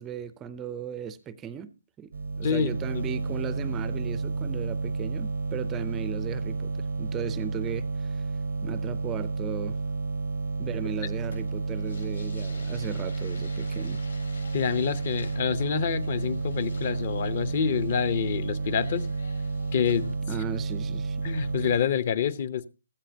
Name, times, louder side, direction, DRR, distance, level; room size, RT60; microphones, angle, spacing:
voice 1, 0.0-1.7 2.0-2.1 2.4-8.2 8.6-9.8 10.6-14.0 20.3-21.2, right 8 dB, 10° right, 0.5 m, -37 dB
sound 1, 2.1-21.8, right 3 dB, 65° right, 0.7 m, -31 dB
voice 2, 2.4-3.0 14.5-19.1 19.7-20.2 21.2-22.6, left 7 dB, 40° left, 0.8 m, -27 dB
sound 2, 10.9-20.2, left 3 dB, 80° left, 6.8 m, -50 dB
16.0 x 13.0 x 2.8 m
hypercardioid pair, 160°, 0 cm